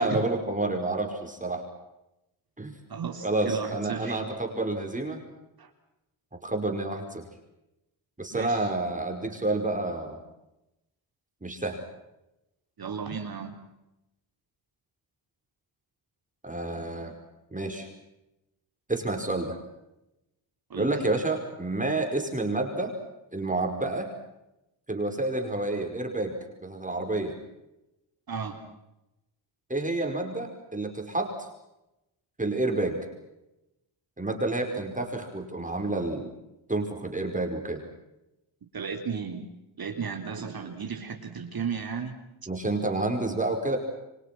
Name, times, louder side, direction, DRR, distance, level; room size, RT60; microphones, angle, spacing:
voice 1, 0.0-1.6 2.6-2.7 3.2-5.2 6.4-7.3 8.2-10.2 11.4-11.8 16.4-17.1 17.5-17.9 18.9-19.6 20.8-22.9 23.3-24.1 24.9-26.3 26.6-27.3 29.7-31.5 32.4-33.1 34.2-36.3 36.7-37.8 42.5-43.8, right 2 dB, 15° right, 3 dB, 5.3 m, -29 dB
voice 2, 2.9-4.2 5.6-5.7 8.3-8.7 12.8-13.5 20.7-20.9 28.3-28.6 38.7-39.5 39.8-42.2, right 6 dB, 45° right, 4 dB, 3.7 m, -34 dB
29.5 x 24.5 x 6.1 m, 0.92 s
cardioid pair, 95°, 48 cm